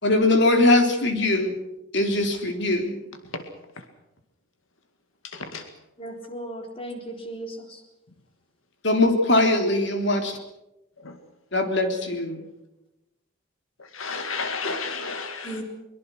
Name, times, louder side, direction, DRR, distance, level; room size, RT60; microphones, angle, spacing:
voice 1, 0.0-1.6 1.9-3.0 8.8-10.4 11.5-12.4, left 2 dB, 55° left, 5 dB, 3.5 m, -21 dB
voice 2, 5.2-5.7 11.0-11.2 13.8-15.6, left 4 dB, 80° left, 7 dB, 2.1 m, -32 dB
voice 3, 6.0-7.8 15.4-15.6, right 1 dB, 25° left, 3 dB, 4.1 m, -36 dB
23.5 x 22.5 x 6.4 m, 0.94 s
head